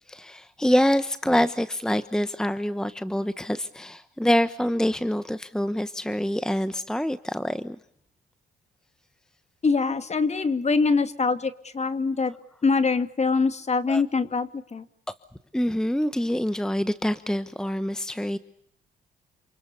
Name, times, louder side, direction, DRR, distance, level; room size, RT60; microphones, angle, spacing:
voice 1, 0.1-7.8 13.9-14.0 15.5-18.4, equal, 5° left, 13 dB, 1.1 m, -25 dB
voice 2, 9.6-12.3 12.6-14.8, left 4 dB, 35° left, 11 dB, 2.4 m, -24 dB
28.0 x 28.0 x 6.9 m, 0.70 s
cardioid pair, 90°, 20 cm